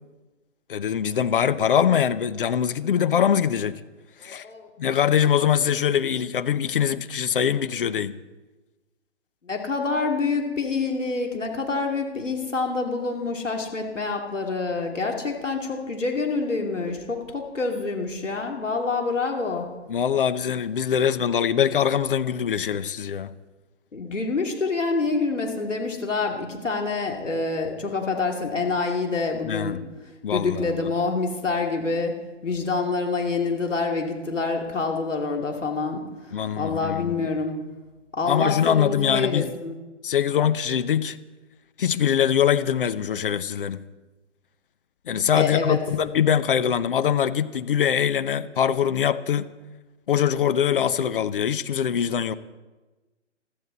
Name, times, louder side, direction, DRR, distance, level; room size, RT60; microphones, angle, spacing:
voice 1, 0.7-3.8 4.2-4.4 4.8-8.2 19.9-23.3 29.4-29.8 30.2-30.9 36.3-37.3 38.3-39.5 40.0-41.2 41.8-43.8 45.1-49.5 50.1-52.3, left 8 dB, 45° left, 0.8 m, -23 dB
voice 2, 4.2-4.7 9.4-19.7 23.9-29.8 30.3-32.2 32.4-36.0 36.6-37.6 38.1-39.7 45.2-45.8, left 4 dB, 85° left, 2.9 m, -27 dB
21.5 x 14.5 x 4.1 m
figure-of-eight pair, 145°, 36 cm